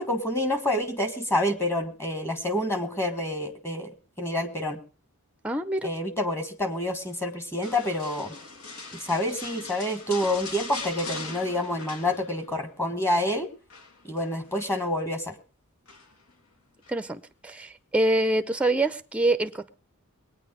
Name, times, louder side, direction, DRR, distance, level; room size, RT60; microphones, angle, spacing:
voice 1, 0.0-3.9 4.2-4.8 5.8-8.3 8.9-13.5 14.0-15.3, left 1 dB, 10° left, 9 dB, 1.4 m, -28 dB
voice 2, 5.4-5.9 16.9-19.7, right 2 dB, 5° right, 10 dB, 0.6 m, -25 dB
sound 1, 7.6-12.6 12.9-13.3 13.7-14.7 15.9-16.3 16.8-17.0, left 3 dB, 75° left, 2.6 m, -40 dB
21.0 x 9.4 x 5.0 m, 0.36 s
head